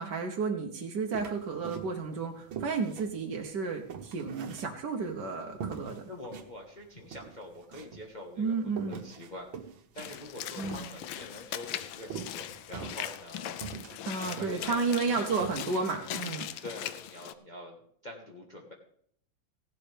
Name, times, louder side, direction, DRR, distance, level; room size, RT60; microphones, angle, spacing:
voice 1, 0.0-6.0 8.4-9.0 10.6-10.9 14.0-16.5, right 4 dB, 60° right, 1 dB, 1.6 m, -32 dB
sound 1, 1.1-2.1 2.5-5.1 5.6-6.5 6.8-6.9 7.1-8.1 8.7-11.3 12.1-13.3 13.6-14.5 14.9-15.0 15.3-15.6, right 6 dB, 85° right, 2.0 m, -42 dB
voice 2, 6.1-13.6 14.2-15.3 16.5-17.8 18.0-18.7, left 1 dB, 25° left, -1 dB, 1.5 m, -45 dB
Walk footsteps / Splash splatter, 10.0-17.3, left 11 dB, 80° left, 1.4 m, -40 dB
16.5 x 11.5 x 3.4 m, 0.65 s
omnidirectional pair, 2.1 m